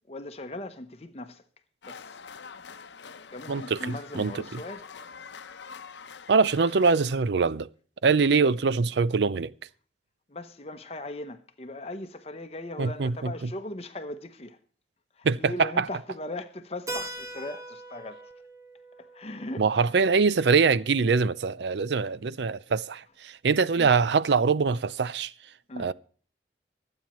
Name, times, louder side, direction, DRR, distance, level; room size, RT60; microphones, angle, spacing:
voice 1, 0.1-1.4 1.8-2.2 3.3-4.9 10.3-14.6 15.1-18.3 19.0-20.1 23.8-23.9 25.7-25.9, left 1 dB, 35° left, 0.8 m, -39 dB
sound 1, 1.8-7.1, left 5 dB, 90° left, 0.7 m, -45 dB
voice 2, 3.5-4.6 6.3-7.7 8.0-9.5 12.8-13.3 15.2-15.8 19.6-25.3 25.8-25.9, right 5 dB, 80° right, 0.5 m, -23 dB
Keyboard (musical), 16.9-21.3, right 2 dB, 20° right, 1.5 m, -42 dB
24.0 x 8.8 x 3.1 m
head